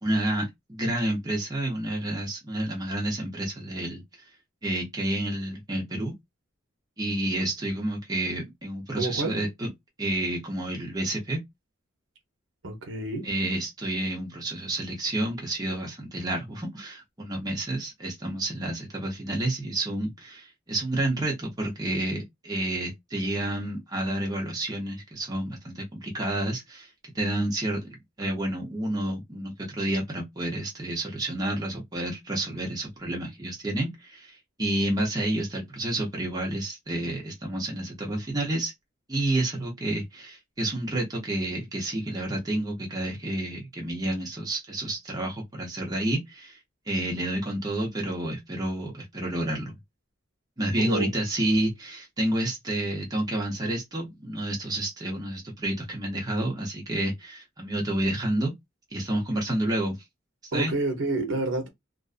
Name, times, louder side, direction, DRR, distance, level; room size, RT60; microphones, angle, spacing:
voice 1, 0.0-4.0 4.6-6.1 7.0-9.7 10.0-11.4 13.2-26.9 27.1-27.9 28.2-38.7 39.1-46.6 46.9-49.7 50.6-58.5 58.9-60.0 60.5-60.7, right 1 dB, 20° right, 0.8 m, -29 dB
voice 2, 9.0-9.4 12.6-13.3 50.8-51.1 60.5-61.7, right 2 dB, 70° right, 0.8 m, -29 dB
2.5 x 2.2 x 2.4 m
head